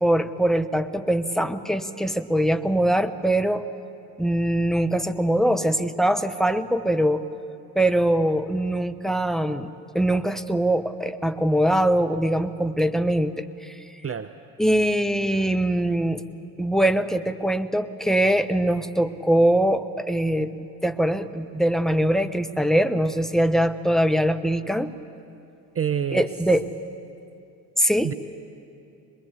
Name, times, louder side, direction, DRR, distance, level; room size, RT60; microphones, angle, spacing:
voice 1, 0.0-3.7 4.2-7.3 7.7-9.7 9.9-13.8 14.6-16.2 16.6-24.9 26.1-26.6 27.8-28.1, right 1 dB, ahead, 11 dB, 0.9 m, -22 dB
voice 2, 25.7-26.4 28.0-28.1, right 8 dB, 30° right, 10 dB, 0.8 m, -27 dB
24.0 x 21.0 x 8.3 m, 2.6 s
hypercardioid pair, 55°, 50 cm